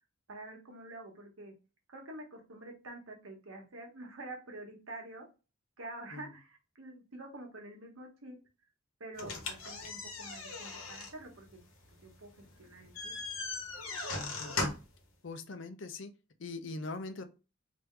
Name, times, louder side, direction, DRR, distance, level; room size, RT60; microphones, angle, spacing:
voice 1, 0.3-1.5 1.9-5.3 5.8-8.4 9.0-11.6 12.0-13.2, right 2 dB, 80° right, 2 dB, 1.2 m, -47 dB
sound 1, 9.2-15.0, left 3 dB, 90° left, 1.1 m, -39 dB
voice 2, 14.4-14.7 15.2-16.1 16.4-17.2, left 3 dB, 60° left, 8 dB, 0.6 m, -42 dB
3.4 x 2.7 x 3.3 m, 0.30 s
head